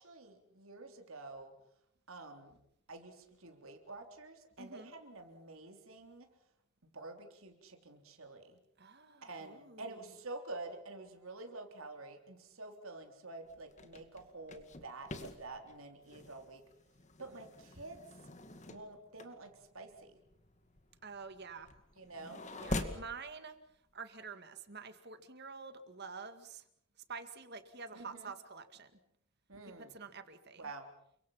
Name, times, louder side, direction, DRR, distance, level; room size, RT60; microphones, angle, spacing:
voice 1, 0.0-1.5 2.1-2.6 2.9-6.3 6.9-8.6 9.2-16.6 17.2-18.0 18.7-20.2 22.0-22.4 27.9-28.3 29.5-29.9 30.6-30.9, right 2 dB, 75° right, 4 dB, 3.7 m, -48 dB
voice 2, 4.6-4.9 8.8-10.0 21.0-21.7 22.6-23.6 23.9-26.6 27.1-28.9 29.8-30.7, right 5 dB, 50° right, 9 dB, 2.2 m, -48 dB
sound 1, 13.4-23.1, left 2 dB, 35° left, 2.2 m, -45 dB
30.0 x 24.5 x 5.8 m, 0.74 s
head